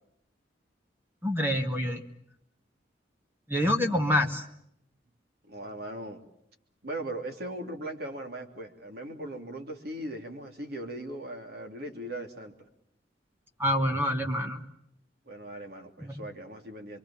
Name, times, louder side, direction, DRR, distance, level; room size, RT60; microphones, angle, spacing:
voice 1, 1.2-2.0 3.5-4.4 13.6-14.6 16.0-16.2, left 1 dB, 15° right, 3 dB, 2.0 m, -27 dB
voice 2, 3.8-4.3 5.4-6.2 6.8-12.5 15.3-17.0, right 1 dB, 60° right, 4 dB, 3.0 m, -39 dB
27.0 x 23.5 x 7.2 m, 0.74 s
head